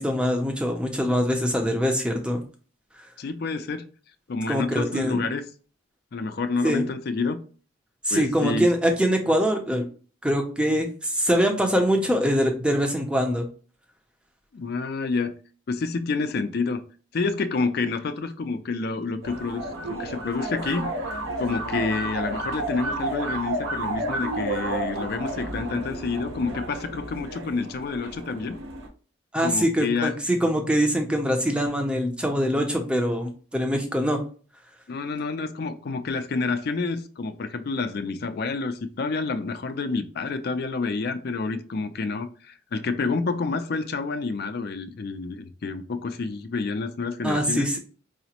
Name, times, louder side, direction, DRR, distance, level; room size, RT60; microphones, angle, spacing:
voice 1, 0.0-2.4 4.5-5.3 6.6-6.8 8.1-9.9 10.2-13.5 29.3-34.2 47.2-47.8, equal, 5° right, 0.5 m, -23 dB
voice 2, 3.2-3.9 4.3-5.4 6.1-7.4 8.1-8.7 14.5-15.3 15.7-16.8 17.1-20.9 21.4-28.6 29.4-30.2 34.9-47.8, left 4 dB, 50° left, 0.4 m, -28 dB
sound 1, 19.2-28.9, right 1 dB, 85° right, 0.9 m, -31 dB
4.8 x 2.0 x 2.8 m
head